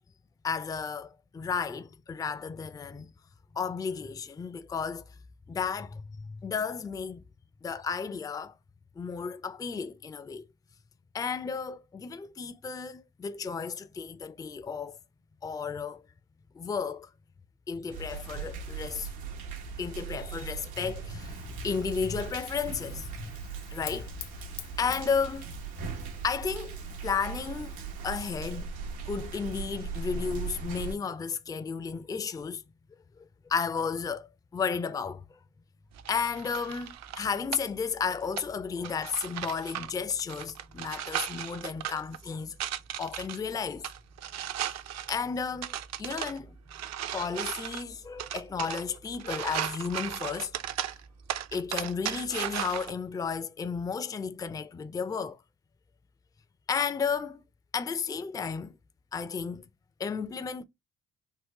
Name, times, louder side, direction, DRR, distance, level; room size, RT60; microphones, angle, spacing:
voice 1, 0.4-3.1 3.5-5.0 5.5-7.2 7.6-8.5 9.0-10.4 11.1-15.0 15.4-16.0 16.5-17.1 17.7-19.1 19.8-23.3 23.7-24.1 24.8-25.5 26.2-27.7 28.0-28.7 29.1-32.6 33.5-35.2 36.1-42.6 43.0-43.9 45.1-45.7 46.0-46.6 47.1-50.5 51.5-55.4 56.7-57.4 57.7-58.8 59.1-59.7 60.0-60.6, left 6 dB, 10° left, 0.3 m, -33 dB
sound 1, 17.9-30.9, right 5 dB, 85° right, 0.8 m, -39 dB
Fire, 21.2-28.6, left 10 dB, 70° left, 0.7 m, -49 dB
sound 2, 35.9-52.9, right 11 dB, 55° right, 0.5 m, -37 dB
3.6 x 2.1 x 2.8 m
hypercardioid pair, 50°, 32 cm